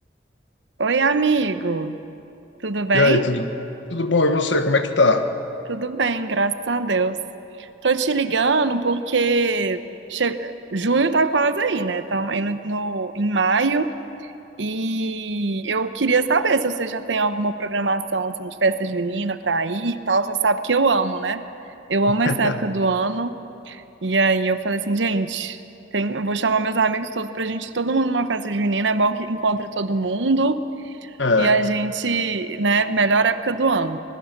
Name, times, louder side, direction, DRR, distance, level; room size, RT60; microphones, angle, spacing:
voice 1, 0.8-1.9 2.6-3.2 5.7-7.2 7.6-9.8 10.1-13.9 14.6-21.4 21.9-23.3 23.7-25.6 25.9-30.6 31.4-34.0, right 3 dB, 80° right, 11 dB, 0.9 m, -22 dB
voice 2, 2.9-3.5 3.9-5.3 22.2-22.6 31.2-31.5, left 2 dB, 80° left, 7 dB, 1.4 m, -19 dB
25.0 x 20.5 x 6.0 m, 2.8 s
head